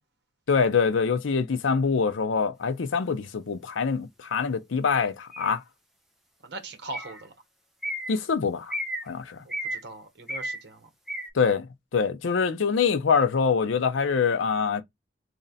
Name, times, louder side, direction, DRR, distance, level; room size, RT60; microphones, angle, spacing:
voice 1, 0.5-5.6 8.1-8.8 9.1-9.4 11.3-11.7 11.9-14.8, left 5 dB, 85° left, 0.5 m, -24 dB
sound 1, 5.3-5.5 6.9-7.2 7.8-8.1 8.7-9.1 9.5-9.8 10.3-10.6 11.1-11.3, equal, ahead, 0.7 m, -32 dB
voice 2, 6.4-7.3 9.7-10.9, right 2 dB, 60° right, 1.1 m, -40 dB
3.2 x 2.6 x 3.9 m
head